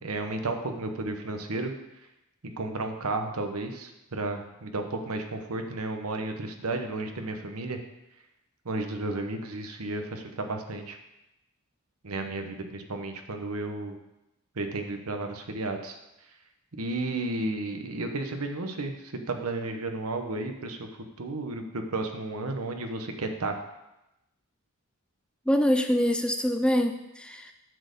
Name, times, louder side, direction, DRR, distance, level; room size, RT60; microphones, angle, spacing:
voice 1, 0.0-2.1 2.6-7.8 8.6-11.0 12.0-14.0 14.5-16.4 16.8-23.6, right 2 dB, 70° right, 5 dB, 1.0 m, -33 dB
voice 2, 25.5-27.5, equal, 5° left, 6 dB, 0.4 m, -25 dB
8.8 x 4.4 x 6.6 m, 0.92 s
head